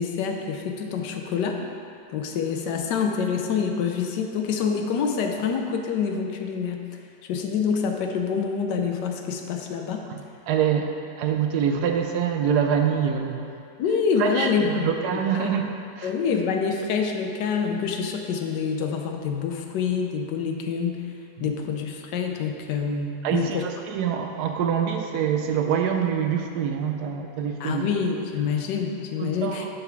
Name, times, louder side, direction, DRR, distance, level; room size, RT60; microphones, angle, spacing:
voice 1, 0.0-1.6 2.1-6.8 7.3-10.0 13.8-14.8 15.3-15.5 16.0-21.0 21.4-23.7 27.6-29.7, left 6 dB, 75° left, 3 dB, 1.2 m, -26 dB
voice 2, 10.5-10.9 11.2-13.5 14.2-15.6 16.0-16.1 21.4-21.6 23.2-27.9 28.4-28.6 29.2-29.7, right 8 dB, 70° right, 4 dB, 1.1 m, -25 dB
6.8 x 5.5 x 4.7 m, 2.5 s
omnidirectional pair, 2.0 m